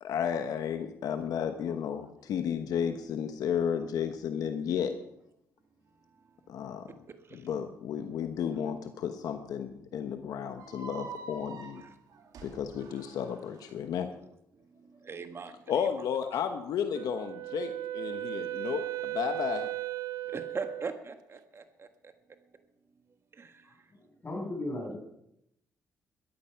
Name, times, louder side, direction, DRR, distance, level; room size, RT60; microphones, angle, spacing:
voice 1, 0.0-5.0 6.5-6.9 7.3-11.8 12.4-14.2 15.7-19.7, left 8 dB, 75° left, 7 dB, 1.1 m, -33 dB
voice 2, 6.8-7.4 10.6-10.7 11.7-12.3 13.8-14.2 14.7-15.9 18.5-18.6 20.3-22.1 23.3-23.9, right 4 dB, 40° right, 8 dB, 1.3 m, -43 dB
sound 1, 10.5-13.7, right 4 dB, 70° right, 2.5 m, -46 dB
Wind instrument woodwind instrument, 16.9-21.0, right 14 dB, 90° right, 0.4 m, -36 dB
voice 3, 24.2-25.0, left 1 dB, 30° left, 0 dB, 7.9 m, -35 dB
13.5 x 12.5 x 5.8 m, 0.78 s
cardioid pair, 80°, 6 cm